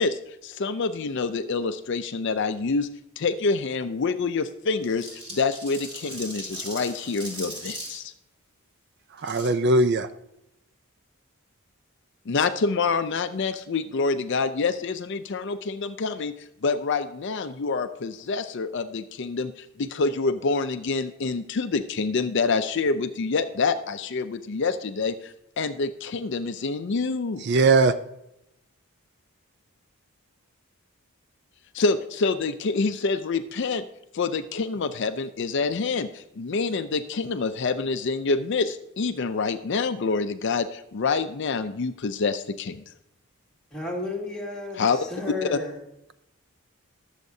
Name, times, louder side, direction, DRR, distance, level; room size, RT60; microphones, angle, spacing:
voice 1, 0.0-2.9 3.2-8.1 12.3-27.4 31.7-33.8 34.1-42.8 44.8-45.0 45.4-45.5, left 4 dB, 55° left, 0.4 m, -27 dB
sound 1, 4.8-8.0 9.2-9.5, right 1 dB, 25° right, 3.1 m, -38 dB
voice 2, 9.2-10.1 27.4-27.9, right 3 dB, 50° right, 0.4 m, -20 dB
voice 3, 43.7-45.8, left 2 dB, 5° left, 2.0 m, -32 dB
19.5 x 7.3 x 2.7 m
head